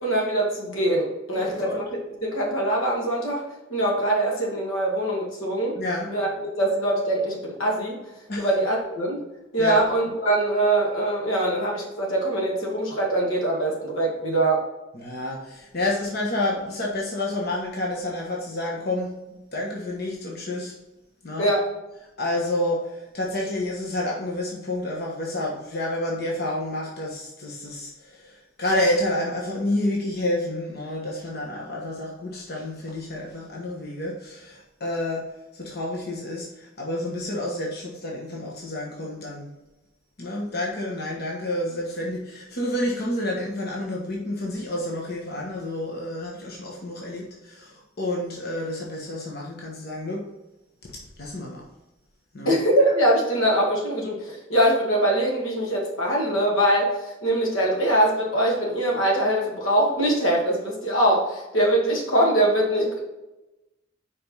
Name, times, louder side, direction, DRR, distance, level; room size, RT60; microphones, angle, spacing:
voice 1, 0.0-3.4 3.7-5.8 6.1-8.0 8.4-9.2 9.5-14.6 21.4-21.7 52.5-63.0, right 1 dB, 85° left, -2 dB, 2.2 m, -23 dB
voice 2, 1.3-1.8 5.8-6.1 8.3-8.5 9.6-9.8 14.2-14.4 14.9-20.7 21.2-21.5 22.2-35.3 35.5-39.5 40.2-50.2 50.8-51.6 52.3-52.6, left 1 dB, 50° left, -2 dB, 1.2 m, -29 dB
5.2 x 5.1 x 5.4 m, 1.0 s
head